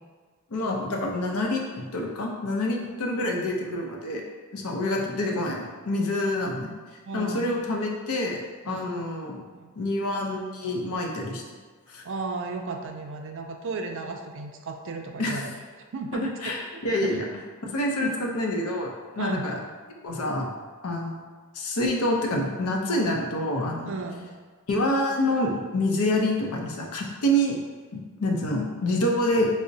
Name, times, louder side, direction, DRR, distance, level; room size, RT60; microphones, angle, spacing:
voice 1, 0.5-4.2 4.5-6.7 7.1-9.4 9.8-11.4 11.9-12.0 15.2-15.4 16.1-17.2 17.6-19.6 20.0-20.5 20.8-21.2 21.5-23.9 24.7-27.6 27.9-29.5, left 1 dB, 80° left, 0 dB, 0.6 m, -27 dB
voice 2, 7.0-7.5 8.6-8.9 9.5-9.7 12.0-15.5 15.9-16.2 16.9-17.2 18.0-18.1 19.2-19.5 23.8-24.3, right 3 dB, 60° right, 4 dB, 0.3 m, -34 dB
4.7 x 2.0 x 2.6 m, 1.5 s
head